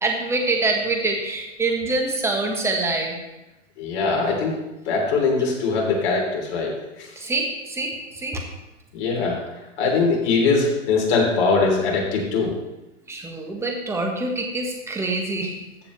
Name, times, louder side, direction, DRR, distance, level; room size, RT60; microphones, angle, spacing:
voice 1, 0.0-3.2 7.1-8.4 9.1-9.2 13.1-15.7, right 2 dB, 5° right, 2 dB, 1.2 m, -25 dB
voice 2, 3.8-4.6 4.8-7.1 8.9-9.4 9.8-12.5, left 4 dB, 40° left, -1 dB, 3.2 m, -21 dB
14.0 x 7.5 x 3.2 m, 1.0 s
hypercardioid pair, 135°, 39 cm